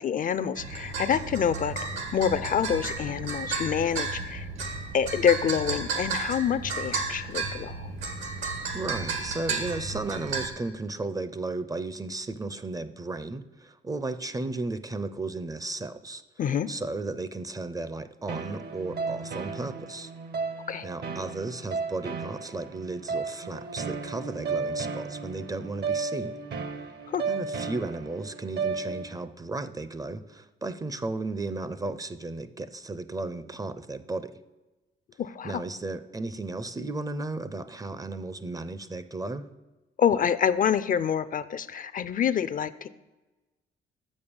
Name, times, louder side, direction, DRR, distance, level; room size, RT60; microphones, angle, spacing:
voice 1, 0.0-4.5 4.9-7.9 16.4-16.7 20.7-20.9 27.1-27.2 35.2-35.6 40.0-42.9, left 8 dB, 45° left, 15 dB, 0.4 m, -27 dB
sound 1, 0.6-10.5, right 4 dB, 85° right, 1.4 m, -33 dB
voice 2, 8.7-16.2 16.7-20.1 20.8-26.4 27.3-34.3 35.4-39.5, right 2 dB, 20° right, 13 dB, 0.4 m, -34 dB
sound 2, 18.3-29.2, right 4 dB, 60° right, 0.8 m, -34 dB
6.5 x 5.3 x 7.0 m, 1.1 s
cardioid pair, 90°, 20 cm